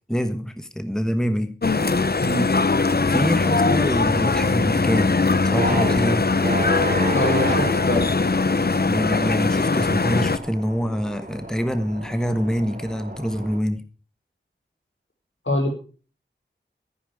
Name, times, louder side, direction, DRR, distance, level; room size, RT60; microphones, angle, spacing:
voice 1, 0.1-1.6 3.1-6.3 8.8-13.9, equal, 5° left, 1.3 m, -25 dB
sound 1, 1.6-10.4, left 4 dB, 55° left, 0.8 m, -21 dB
sound 2, 1.8-13.6, right 2 dB, 45° right, 2.5 m, -34 dB
voice 2, 7.1-8.1 15.5-15.7, left 1 dB, 75° left, 5.7 m, -24 dB
14.0 x 9.7 x 4.9 m
wide cardioid pair, 45°, 20 cm